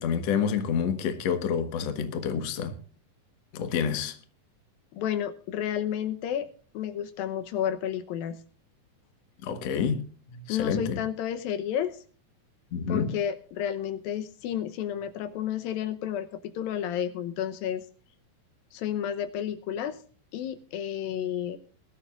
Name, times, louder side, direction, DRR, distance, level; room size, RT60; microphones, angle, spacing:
voice 1, 0.0-2.8 3.5-4.2 9.4-11.0 12.7-13.2, left 7 dB, 55° left, 2.2 m, -28 dB
voice 2, 4.9-6.5 6.7-8.4 10.5-12.0 12.9-17.9 18.7-20.0 20.3-21.6, left 10 dB, 80° left, 2.6 m, -31 dB
22.0 x 12.5 x 2.5 m
omnidirectional pair, 4.2 m